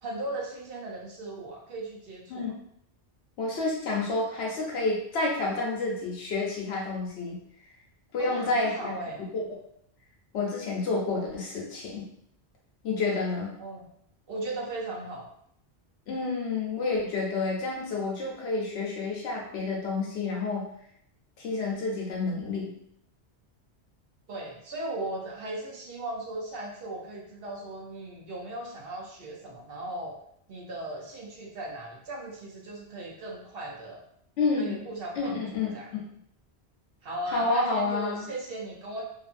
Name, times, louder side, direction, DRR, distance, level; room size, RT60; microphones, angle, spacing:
voice 1, 0.0-2.5 8.2-9.2 13.6-13.9 14.3-15.3 24.3-30.2 30.5-34.0 34.6-35.9 37.0-39.1, right 2 dB, 65° right, -2 dB, 0.8 m, -37 dB
voice 2, 3.4-7.4 8.1-8.9 9.2-9.4 10.3-12.0 12.8-13.5 16.1-20.7 21.4-22.7 34.4-34.8 35.2-35.7 37.3-38.3, left 3 dB, 75° left, -3 dB, 1.0 m, -29 dB
2.7 x 2.5 x 2.5 m, 0.69 s
omnidirectional pair, 1.1 m